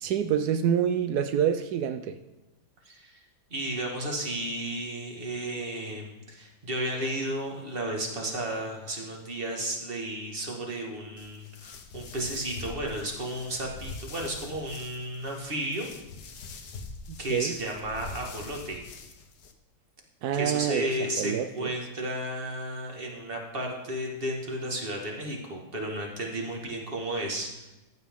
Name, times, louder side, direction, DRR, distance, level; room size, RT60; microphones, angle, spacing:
voice 1, 0.0-2.2 17.1-17.6 20.2-20.9 21.2-21.7, right 9 dB, 85° right, 8 dB, 0.8 m, -27 dB
voice 2, 2.8-3.2 3.5-15.9 17.2-18.8 20.3-27.7, right 1 dB, 25° right, 0 dB, 1.8 m, -33 dB
sound 1, 11.2-19.5, left 4 dB, 60° left, 1.4 m, -44 dB
14.5 x 9.3 x 3.7 m, 1.0 s
omnidirectional pair, 2.3 m